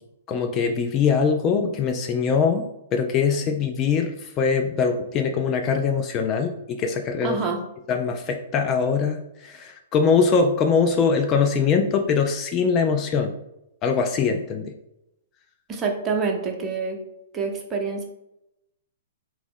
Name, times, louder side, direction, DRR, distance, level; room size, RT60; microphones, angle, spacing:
voice 1, 0.3-2.6 2.9-7.4 7.9-13.3 13.8-14.7, left 5 dB, 25° left, 4 dB, 0.4 m, -22 dB
voice 2, 7.2-7.6 15.7-17.0 17.3-18.0, right 5 dB, 20° right, 1 dB, 0.8 m, -26 dB
4.0 x 2.9 x 3.7 m, 0.85 s
figure-of-eight pair, 110°, 0 cm